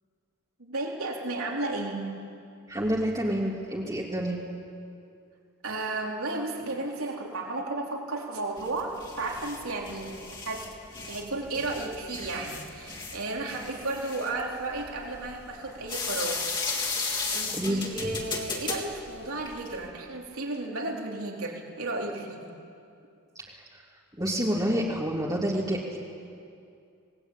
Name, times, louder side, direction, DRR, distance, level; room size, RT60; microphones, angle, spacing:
voice 1, 0.6-2.1 5.6-10.8 11.1-16.4 16.8-22.5, right 2 dB, 70° right, -1 dB, 4.3 m, -33 dB
voice 2, 2.7-4.4 17.5-18.1 23.5-23.6 24.2-26.0, equal, 15° right, -5 dB, 2.8 m, -28 dB
sound 1, 8.6-19.9, left 4 dB, 20° left, 3.5 m, -35 dB
28.0 x 20.0 x 9.1 m, 2.5 s
head